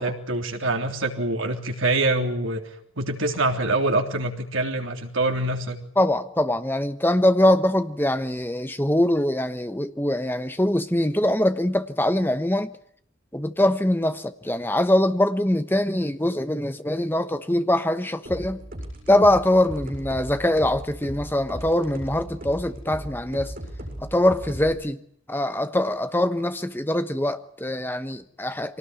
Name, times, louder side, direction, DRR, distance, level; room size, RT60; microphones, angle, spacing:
voice 1, 0.0-2.6 3.0-5.8, right 2 dB, 75° right, 3.5 m, -25 dB
voice 2, 6.0-12.7 13.3-18.6 19.1-23.5 24.0-25.0 25.3-28.8, left 1 dB, 10° left, 1.1 m, -23 dB
sound 1, 18.3-24.7, right 1 dB, 45° right, 7.6 m, -37 dB
24.5 x 18.5 x 9.6 m
head